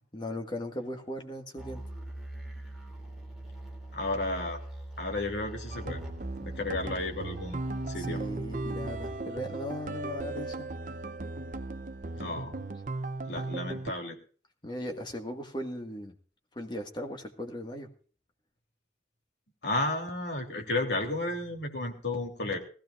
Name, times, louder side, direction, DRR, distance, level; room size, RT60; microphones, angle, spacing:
voice 1, 0.1-1.8 8.0-10.7 12.1-12.4 14.6-16.1 16.5-17.9, equal, 25° left, 3 dB, 1.8 m, -38 dB
sound 1, 1.6-9.2, right 1 dB, ahead, 2.8 m, -42 dB
voice 2, 3.9-4.6 5.0-6.0 6.4-8.2 12.2-12.5 13.2-14.1 19.6-22.6, left 2 dB, 70° left, 1 dB, 3.3 m, -33 dB
sound 2, 5.7-13.9, right 2 dB, 45° right, 0.7 m, -37 dB
20.0 x 15.0 x 2.5 m, 0.40 s
head